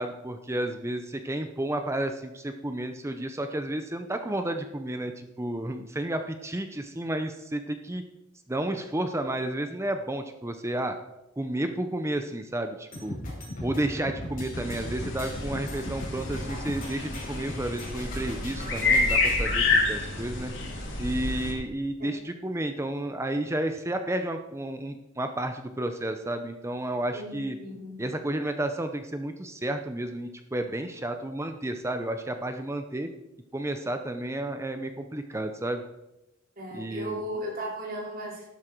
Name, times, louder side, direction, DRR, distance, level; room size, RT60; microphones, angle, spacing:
voice 1, 0.0-8.0 8.5-11.0 11.4-13.2 13.6-20.5 21.0-27.6 28.0-33.1 33.5-35.8 36.7-37.2, right 1 dB, 15° right, 7 dB, 0.7 m, -31 dB
sound 1, 12.9-19.4, left 1 dB, 45° left, 5.4 m, -38 dB
sound 2, 14.5-21.5, left 3 dB, 70° left, 3.7 m, -28 dB
voice 2, 27.1-28.0 36.6-38.4, right 1 dB, 45° right, -3 dB, 3.9 m, -36 dB
12.5 x 11.5 x 4.6 m, 0.93 s
head